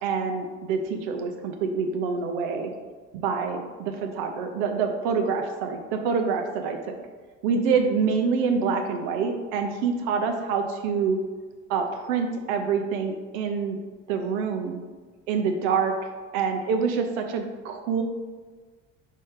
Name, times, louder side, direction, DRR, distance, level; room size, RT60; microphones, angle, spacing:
voice 1, 0.0-2.7 3.1-7.0 7.4-11.2 11.7-13.8 14.1-14.8 15.3-18.0, right 5 dB, 65° right, 5 dB, 0.7 m, -26 dB
5.2 x 2.8 x 3.7 m, 1.4 s
hypercardioid pair, 60°, 36 cm